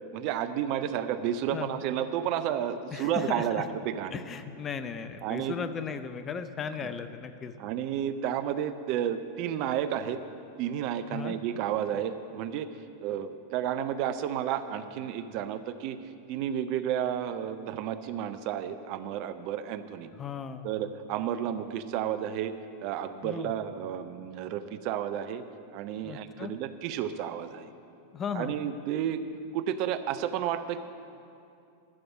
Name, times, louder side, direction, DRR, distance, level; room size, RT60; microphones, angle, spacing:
voice 1, 0.1-4.2 5.2-5.6 6.8-6.9 7.6-10.2 10.6-12.7 13.0-16.0 16.3-20.1 20.6-22.5 22.8-25.4 25.7-27.7 28.3-29.3 29.5-30.8, right 10 dB, 45° right, 11 dB, 0.5 m, -31 dB
voice 2, 2.9-3.7 4.1-7.5 11.1-11.3 20.2-20.7 23.2-23.5 26.0-26.5 28.1-28.6, left 6 dB, 25° left, 10 dB, 0.6 m, -36 dB
13.0 x 6.9 x 8.3 m, 2.6 s
figure-of-eight pair, 90°, 0 cm